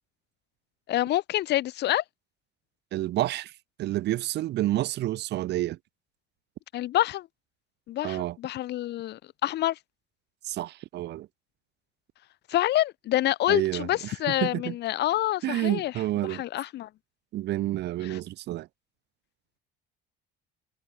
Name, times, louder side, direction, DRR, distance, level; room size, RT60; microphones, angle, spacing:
voice 1, 0.9-2.0 6.7-7.3 7.9-9.8 12.5-15.9 16.3-16.9 18.0-18.2, left 14 dB, 55° left, 1.6 m, -27 dB
voice 2, 2.9-3.5 3.8-5.8 8.0-8.4 10.4-11.3 13.5-14.7 15.4-16.4 17.3-18.7, right 15 dB, 55° right, 1.2 m, -29 dB
cardioid pair, 125°, 21 cm